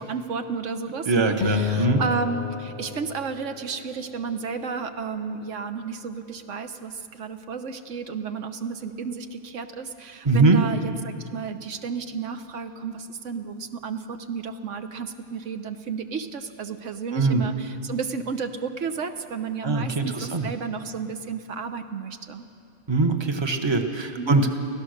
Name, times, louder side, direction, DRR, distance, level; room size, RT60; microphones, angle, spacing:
voice 1, 0.0-22.4 24.2-24.4, right 5 dB, 90° right, 8 dB, 1.3 m, -32 dB
voice 2, 1.1-2.0 10.2-10.6 17.1-17.4 19.6-20.5 22.9-24.5, right 3 dB, 25° right, 6 dB, 1.2 m, -22 dB
sound 1, 1.4-4.0, left 7 dB, 40° left, 0.8 m, -31 dB
24.5 x 16.0 x 6.6 m, 2.4 s
omnidirectional pair, 1.2 m